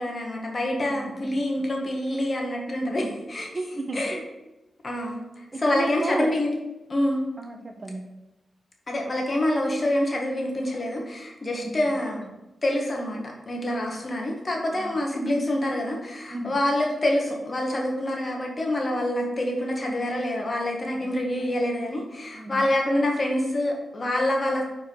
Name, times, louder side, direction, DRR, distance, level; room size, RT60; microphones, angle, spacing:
voice 1, 0.0-3.5 3.9-4.2 4.8-6.5 6.9-7.2 8.9-13.2 13.5-24.6, left 1 dB, 40° left, 0 dB, 1.6 m, -26 dB
voice 2, 0.9-1.4 3.0-3.1 3.5-4.1 5.5-6.3 7.4-8.0 11.6-12.0 13.8-13.9 14.7-15.0 16.3-16.5 20.9-21.1 22.3-22.6, right 2 dB, 40° right, 5 dB, 0.9 m, -33 dB
4.6 x 4.6 x 4.7 m, 0.99 s
cardioid pair, 50°, 0 cm